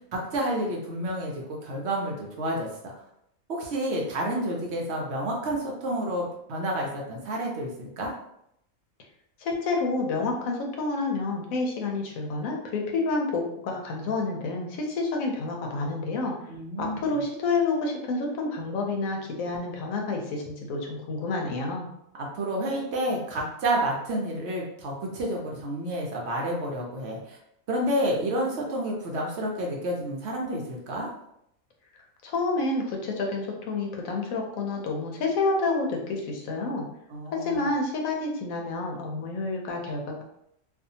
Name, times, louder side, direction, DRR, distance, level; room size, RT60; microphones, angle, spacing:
voice 1, 0.1-1.3 1.6-2.9 3.5-8.1 16.5-17.0 22.2-27.4 27.7-31.1 37.1-37.7, right 1 dB, 65° right, -1 dB, 0.8 m, -30 dB
voice 2, 9.4-16.3 16.8-21.9 32.2-36.8 37.3-40.2, left 3 dB, 85° left, 1 dB, 1.0 m, -29 dB
2.6 x 2.3 x 2.7 m, 0.76 s
omnidirectional pair, 1.4 m